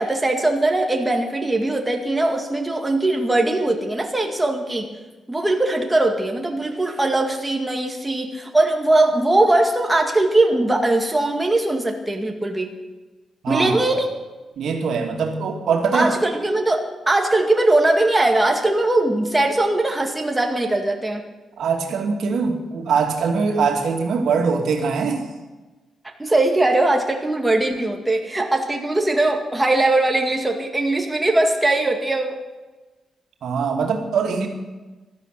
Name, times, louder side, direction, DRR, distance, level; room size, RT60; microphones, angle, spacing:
voice 1, 0.0-4.9 5.3-12.8 13.5-14.1 15.9-21.2 26.2-32.4, right 2 dB, 10° right, 2 dB, 2.0 m, -20 dB
voice 2, 13.4-14.0 14.6-16.1 21.6-25.3 33.4-34.5, right 5 dB, 75° right, 2 dB, 2.4 m, -22 dB
16.0 x 12.5 x 6.7 m, 1.2 s
cardioid pair, 120°, 0 cm